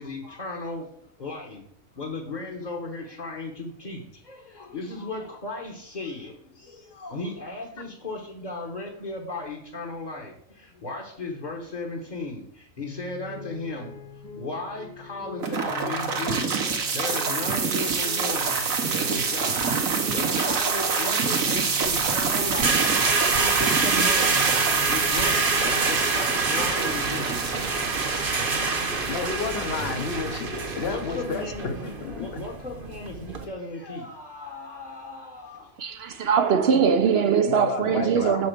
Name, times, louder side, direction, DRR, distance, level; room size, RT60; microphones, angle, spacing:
voice 1, 0.0-1.6 2.0-13.9 14.3-18.6 18.9-19.8 20.1-22.9 23.3-24.5 24.8-25.5 25.9-27.4 30.8-35.7 36.1-36.3, left 2 dB, 35° left, 1.2 m, -36 dB
sound 1, 12.8-32.1, left 4 dB, 70° left, 3.4 m, -43 dB
sound 2, 15.4-31.4, right 5 dB, 75° right, 1.5 m, -27 dB
sound 3, 21.8-33.4, right 4 dB, 45° right, 1.1 m, -27 dB
voice 2, 29.1-32.3 37.5-38.5, left 5 dB, 50° left, 1.1 m, -31 dB
voice 3, 35.8-38.5, right 7 dB, 60° right, 0.7 m, -21 dB
7.2 x 4.1 x 6.6 m
omnidirectional pair, 1.4 m